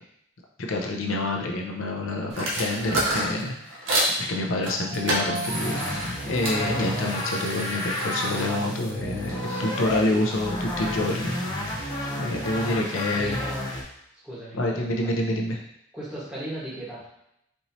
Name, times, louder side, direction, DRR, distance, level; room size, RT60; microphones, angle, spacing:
voice 1, 0.7-3.5 4.2-5.8 6.3-11.3 11.7-13.4 14.5-15.6, left 2 dB, 80° left, 1 dB, 0.7 m, -27 dB
sound 1, 2.3-4.1 4.6-6.6 7.0-9.6, right 1 dB, 65° right, 1.0 m, -30 dB
sound 2, 4.6-10.1, right 2 dB, 35° right, 0.4 m, -37 dB
sound 3, 5.5-13.8, left 1 dB, 20° left, 0.8 m, -31 dB
voice 2, 12.6-13.6 14.2-15.1 15.9-17.1, right 1 dB, 5° right, -9 dB, 1.4 m, -37 dB
4.5 x 3.0 x 2.7 m, 0.77 s
head